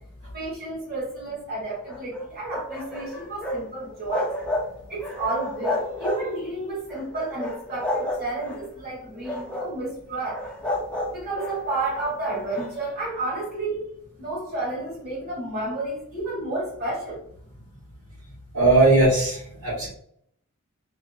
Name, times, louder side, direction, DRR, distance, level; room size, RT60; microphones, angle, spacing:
voice 1, 0.3-4.3 4.9-10.4 11.0-13.9 14.2-17.2, right 2 dB, 45° right, -7 dB, 1.2 m, -31 dB
sound 1, 1.7-3.6 3.9-4.7 5.0-6.5 6.9-8.6 9.1-9.8 10.3-12.7, left 1 dB, 5° left, 0.4 m, -31 dB
voice 2, 18.5-19.9, right 2 dB, 70° right, -6 dB, 1.4 m, -19 dB
2.6 x 2.6 x 2.3 m, 0.66 s
head